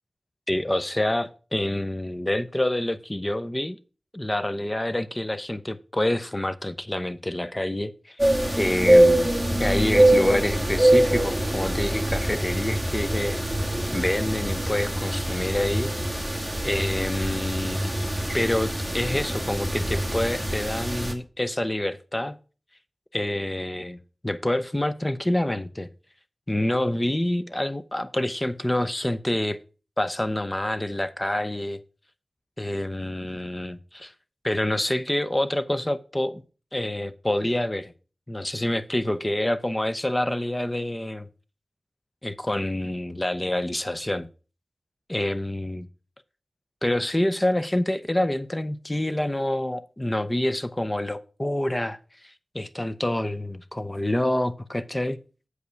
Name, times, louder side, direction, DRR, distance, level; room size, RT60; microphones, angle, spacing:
voice 1, 0.5-3.8 4.1-8.2 8.6-9.3 9.6-13.4 13.9-15.9 16.6-17.9 18.3-22.4 23.1-25.9 26.5-29.6 30.0-31.8 32.6-34.1 34.4-36.4 36.7-37.9 38.3-41.3 42.2-44.3 45.1-45.8 46.8-55.2, left 1 dB, 20° left, 0.7 m, -27 dB
sound 1, 8.2-21.1, right 1 dB, ahead, 1.8 m, -23 dB
8.0 x 5.3 x 6.3 m
wide cardioid pair, 75°, 0 cm